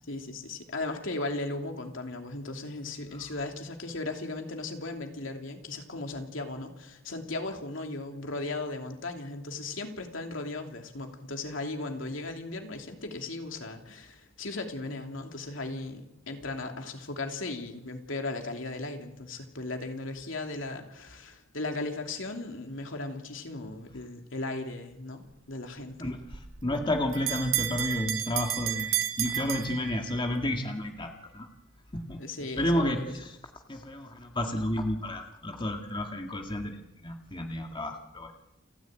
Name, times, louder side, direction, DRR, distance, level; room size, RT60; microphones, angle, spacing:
voice 1, 0.1-26.1 32.2-33.1, left 2 dB, 75° left, 4 dB, 2.9 m, -37 dB
voice 2, 26.0-31.5 31.9-32.2 32.6-33.3 33.7-38.3, left 1 dB, 25° left, 3 dB, 1.9 m, -31 dB
Bell, 26.3-30.4, right 11 dB, 85° right, 2.1 m, -32 dB
29.5 x 11.0 x 9.1 m, 0.87 s
head